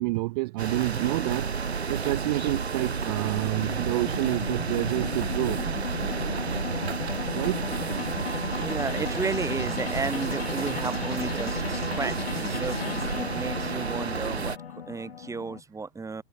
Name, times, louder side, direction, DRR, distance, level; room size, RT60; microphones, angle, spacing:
voice 1, 0.0-1.5 1.9-5.6 7.3-7.7 7.9-8.0, right 23 dB, 40° right, 1.5 m, -28 dB
sound 1, 0.6-14.6, right 5 dB, 80° right, 1.8 m, -31 dB
sound 2, 2.1-15.6, left 8 dB, 70° left, 2.9 m, -36 dB
voice 2, 8.5-16.2, right 4 dB, 10° right, 5.7 m, -33 dB
figure-of-eight pair, 110°, 32 cm